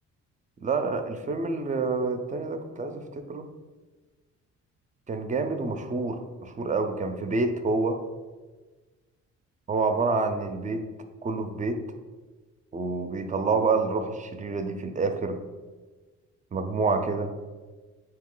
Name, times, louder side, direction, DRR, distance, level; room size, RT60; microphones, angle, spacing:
voice 1, 0.6-3.5 5.1-8.0 9.7-10.9 11.2-11.8 12.7-15.4 16.5-17.3, right 3 dB, 25° right, 7 dB, 0.4 m, -28 dB
3.8 x 2.8 x 3.7 m, 1.3 s
cardioid pair, 90°, 30 cm